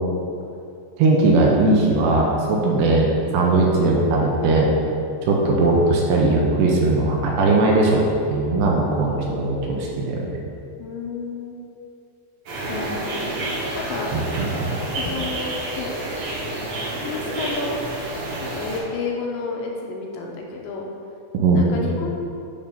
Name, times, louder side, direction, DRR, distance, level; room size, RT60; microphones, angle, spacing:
voice 1, 1.0-3.1 3.3-4.7 5.3-8.0 8.3-10.4 14.1-14.5 21.3-21.8, right 2 dB, 80° right, -2 dB, 2.7 m, -19 dB
voice 2, 10.8-11.6 12.7-13.3 13.7-14.1 15.0-16.3 17.0-17.8 18.4-20.9 21.5-22.2, left 4 dB, 85° left, -1 dB, 2.8 m, -31 dB
sound 1, 12.5-18.8, right 1 dB, 60° right, 2.6 m, -29 dB
8.8 x 3.6 x 5.4 m, 2.6 s
omnidirectional pair, 5.3 m